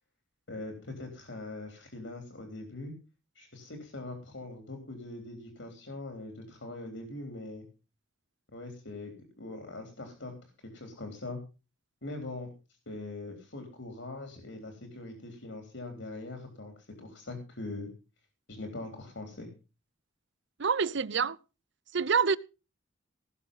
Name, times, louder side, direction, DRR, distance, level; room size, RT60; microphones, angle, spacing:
voice 1, 0.5-2.9 3.4-7.7 8.5-11.4 12.0-12.5 12.9-17.9 18.5-19.5, left 2 dB, 70° left, 3.6 m, -42 dB
voice 2, 20.6-21.4 21.9-22.4, right 5 dB, 65° right, 0.7 m, -26 dB
18.5 x 7.3 x 5.4 m
head